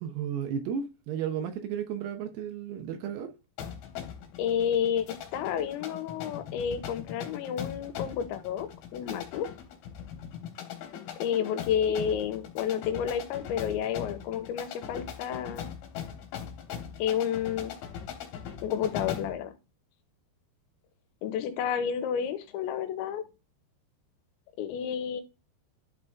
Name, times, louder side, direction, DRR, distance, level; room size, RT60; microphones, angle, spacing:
voice 1, 0.0-3.3, right 8 dB, 75° right, 2.7 m, -33 dB
sound 1, 3.6-19.4, left 8 dB, 65° left, 3.0 m, -40 dB
voice 2, 4.4-9.5 11.2-15.7 17.0-17.7 18.6-19.5 21.2-23.2 24.6-25.2, left 8 dB, 85° left, 3.0 m, -30 dB
11.0 x 4.2 x 3.5 m
omnidirectional pair, 5.3 m